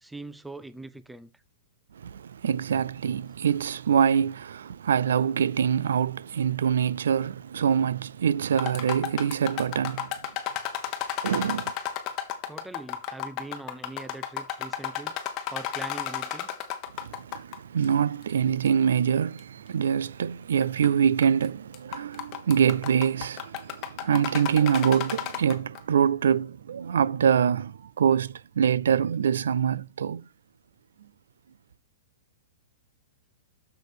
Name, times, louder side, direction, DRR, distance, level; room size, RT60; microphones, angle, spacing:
voice 1, 0.0-1.3 12.5-15.1 15.5-16.5, right 2 dB, 5° right, 0.4 m, -41 dB
voice 2, 2.0-10.1 11.2-11.7 17.0-30.2, right 8 dB, 85° right, 0.3 m, -25 dB
sound 1, 8.5-17.6 17.8-17.9 18.7-18.8 19.4-19.5 20.6-20.9 21.2-21.5 21.7-25.8, left 10 dB, 30° left, 1.1 m, -33 dB
6.8 x 6.3 x 5.0 m
hypercardioid pair, 160°, 0 cm